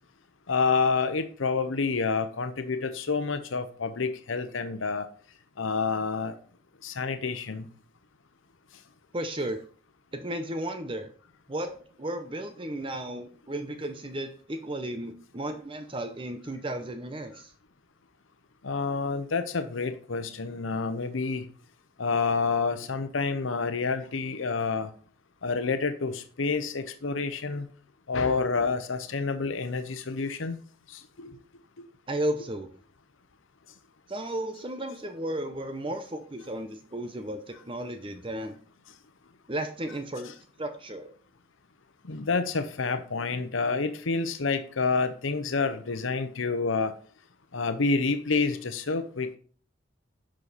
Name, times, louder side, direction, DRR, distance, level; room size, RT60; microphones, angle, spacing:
voice 1, 0.5-5.1 5.6-6.3 6.8-7.6 18.6-21.4 22.0-24.9 25.4-27.7 28.1-30.6 31.2-31.3 42.1-46.9 47.5-49.4, left 4 dB, 85° left, 9 dB, 0.8 m, -28 dB
voice 2, 9.1-9.6 10.1-11.1 11.5-17.5 32.1-32.7 34.1-38.6 39.5-41.1, right 1 dB, 25° right, 8 dB, 0.7 m, -34 dB
11.0 x 6.4 x 4.1 m, 0.43 s
head